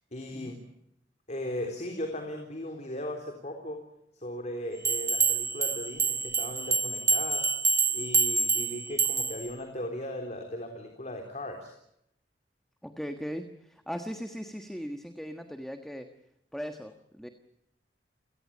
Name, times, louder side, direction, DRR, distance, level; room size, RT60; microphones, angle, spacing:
voice 1, 0.1-0.6 1.3-3.8 4.1-7.5 7.9-11.7, left 1 dB, 40° left, 4 dB, 3.6 m, -37 dB
sound 1, 4.8-9.5, right 4 dB, 15° right, 1.2 m, -27 dB
voice 2, 12.8-16.1 16.5-17.3, equal, ahead, 6 dB, 1.5 m, -38 dB
29.5 x 18.0 x 8.6 m, 0.79 s
head